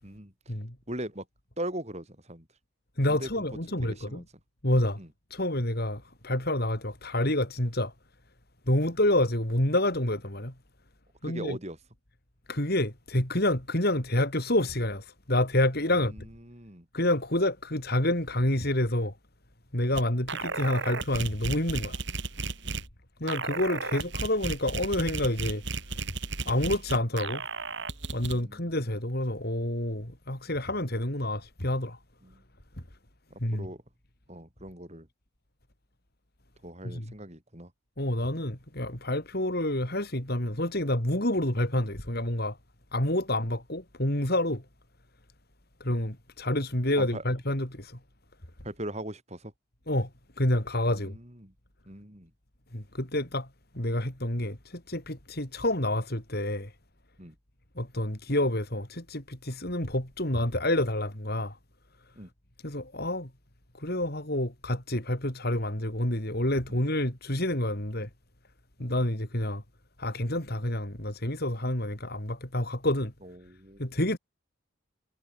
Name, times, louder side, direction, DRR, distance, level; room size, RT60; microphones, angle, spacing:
voice 1, 0.9-1.2 1.6-2.5 3.1-3.4 3.8-4.2 5.0-5.1 11.2-11.8 15.9-16.9 19.9-20.0 22.6-22.8 28.2-28.8 32.2-32.4 33.5-33.8 34.3-35.1 36.6-37.7 47.0-47.2 48.6-49.5 50.9-51.5 51.9-52.3 57.2-57.3 62.2-62.3 66.7-66.8 68.8-68.9 73.2-73.8, right 1 dB, 30° right, 7.5 m, -40 dB
voice 2, 3.0-4.2 4.6-5.0 5.3-7.9 8.7-10.5 11.2-11.6 12.5-16.1 16.9-19.1 19.7-22.0 23.2-25.6 26.4-27.4 28.1-32.0 33.4-33.7 36.8-37.1 38.0-42.6 42.9-44.6 45.8-48.0 49.9-50.1 50.4-51.2 52.7-53.5 53.7-56.7 57.8-61.6 62.6-63.3 63.8-68.1 68.8-69.6 70.0-73.1 73.8-74.2, left 1 dB, 45° left, 4.3 m, -28 dB
sound 1, 19.9-20.0 20.3-22.9 23.3-28.4, right 4 dB, 55° right, 4.0 m, -34 dB
head